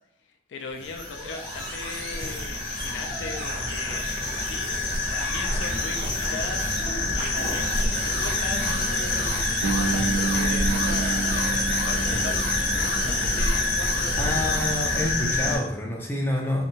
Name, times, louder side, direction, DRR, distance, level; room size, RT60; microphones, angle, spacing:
voice 1, 0.5-6.7 7.1-14.6, left 4 dB, 80° left, 3 dB, 0.3 m, -39 dB
sound 1, 0.6-15.2, right 1 dB, 50° right, 1.1 m, -35 dB
sound 2, 0.8-15.6, left 2 dB, 45° left, 0.7 m, -27 dB
Bass guitar, 9.6-13.6, right 4 dB, 80° right, 0.4 m, -30 dB
voice 2, 14.2-16.7, left 1 dB, 10° left, -2 dB, 0.4 m, -27 dB
2.7 x 2.2 x 2.7 m, 0.75 s
head